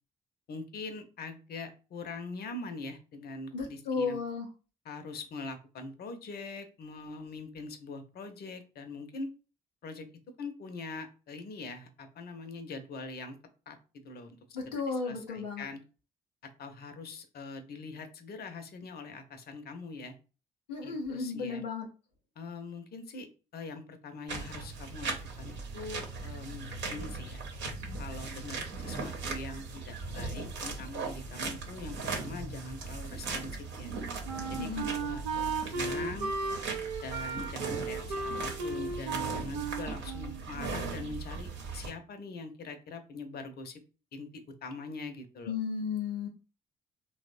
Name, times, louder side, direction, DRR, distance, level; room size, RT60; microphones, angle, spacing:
voice 1, 0.5-4.2 4.8-9.3 9.8-10.1 10.4-13.4 13.7-13.8 14.0-14.4 14.7-15.8 16.6-20.1 20.8-21.6 22.4-23.3 23.5-27.4 28.0-33.9 34.5-35.2 35.7-36.3 37.0-43.8 44.1-45.5, left 3 dB, 50° left, 8 dB, 0.6 m, -43 dB
voice 2, 3.5-4.5 14.5-15.7 20.7-21.9 34.6-34.9 45.5-46.3, left 5 dB, 90° left, 0 dB, 0.4 m, -34 dB
sound 1, 24.3-41.9, right 4 dB, 65° right, 0.8 m, -39 dB
Wind instrument woodwind instrument, 33.8-41.1, right 4 dB, 85° right, 0.4 m, -36 dB
3.0 x 2.0 x 2.5 m, 0.35 s
hypercardioid pair, 40°, 21 cm